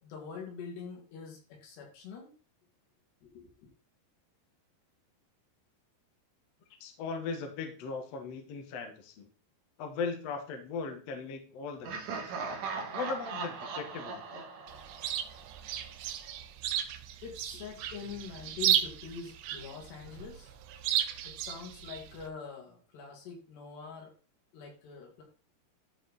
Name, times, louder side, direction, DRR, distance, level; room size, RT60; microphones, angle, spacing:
voice 1, 0.0-2.3 3.2-3.7 17.2-20.5 21.2-24.1 24.5-25.2, left 5 dB, 80° left, 0 dB, 4.4 m, -44 dB
voice 2, 6.8-9.3 9.8-12.3 12.9-14.5, left 4 dB, 60° left, 4 dB, 1.8 m, -38 dB
Laughter, 11.8-15.7, right 4 dB, 60° right, 2.4 m, -39 dB
Chirp tweet, 14.7-22.3, right 11 dB, 85° right, 2.9 m, -34 dB
12.5 x 4.5 x 4.1 m, 0.38 s
omnidirectional pair, 4.8 m